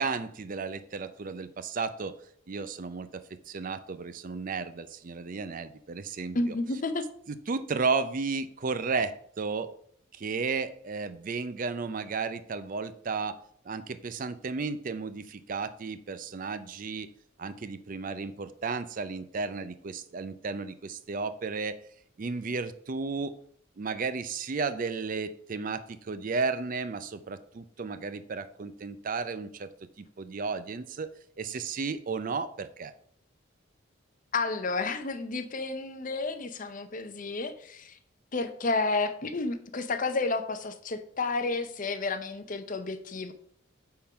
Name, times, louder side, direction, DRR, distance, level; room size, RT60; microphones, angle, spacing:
voice 1, 0.0-2.2 2.5-6.4 7.3-9.7 10.1-17.1 17.4-21.8 22.2-23.4 23.8-29.7 30.2-31.1 31.4-32.9, right 4 dB, 40° right, 13 dB, 0.4 m, -33 dB
voice 2, 6.3-7.0 34.3-38.0 38.3-43.3, left 3 dB, 40° left, 10 dB, 0.7 m, -31 dB
8.5 x 3.8 x 5.6 m, 0.64 s
head